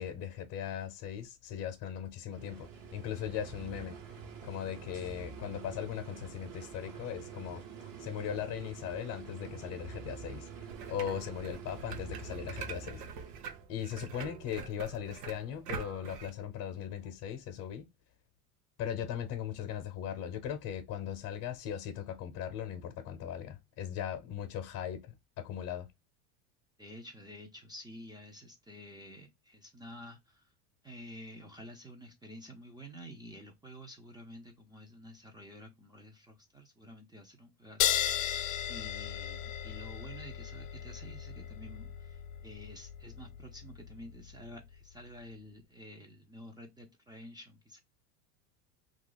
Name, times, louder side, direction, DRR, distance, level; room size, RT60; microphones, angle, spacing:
voice 1, 0.0-4.2 4.4-13.0 13.7-17.9 18.8-25.9, left 9 dB, 45° left, 0.8 m, -39 dB
sound 1, 2.3-13.6, right 6 dB, 45° right, 1.2 m, -46 dB
sound 2, 10.7-16.3, right 6 dB, 90° right, 0.8 m, -45 dB
voice 2, 26.8-30.5 30.8-38.3 38.6-47.8, equal, 10° right, 0.6 m, -50 dB
sound 3, 37.8-44.8, left 10 dB, 75° left, 0.6 m, -36 dB
2.7 x 2.5 x 3.9 m
supercardioid pair, 105°, 46 cm